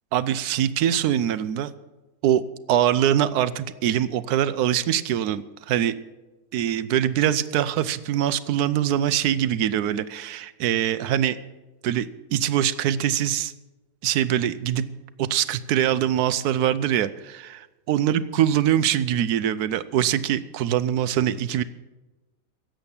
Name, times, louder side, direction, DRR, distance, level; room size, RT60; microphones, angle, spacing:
voice 1, 0.1-1.7 2.2-2.4 2.7-5.9 6.5-11.4 11.8-13.5 14.0-14.9 15.2-21.6, right 10 dB, 70° right, 14 dB, 1.1 m, -23 dB
16.5 x 7.8 x 7.1 m, 1.1 s
omnidirectional pair, 1.9 m